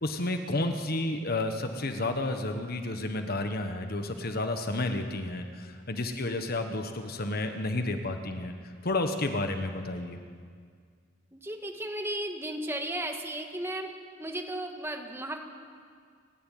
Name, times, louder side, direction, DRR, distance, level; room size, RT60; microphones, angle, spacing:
voice 1, 0.0-10.2, left 2 dB, 50° left, 7 dB, 1.3 m, -31 dB
voice 2, 11.3-13.9 14.2-15.4, right 1 dB, 15° right, 3 dB, 1.8 m, -35 dB
30.0 x 11.5 x 9.3 m, 2.1 s
head